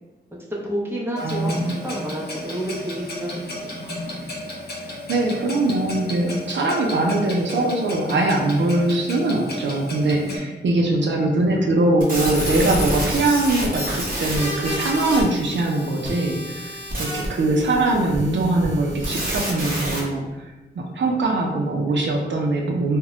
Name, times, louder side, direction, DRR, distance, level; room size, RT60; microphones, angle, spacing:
voice 1, 0.5-3.8, right 1 dB, 15° right, -4 dB, 0.6 m, -30 dB
Clock, 1.2-10.4, left 1 dB, 60° left, 0.6 m, -34 dB
voice 2, 1.2-1.8 5.1-16.7 17.0-20.2 20.8-23.0, right 2 dB, 90° right, 1 dB, 0.4 m, -22 dB
sound 1, 12.0-20.0, equal, 50° right, 0.8 m, -28 dB
2.1 x 2.0 x 3.7 m, 1.1 s
wide cardioid pair, 95°, 18 cm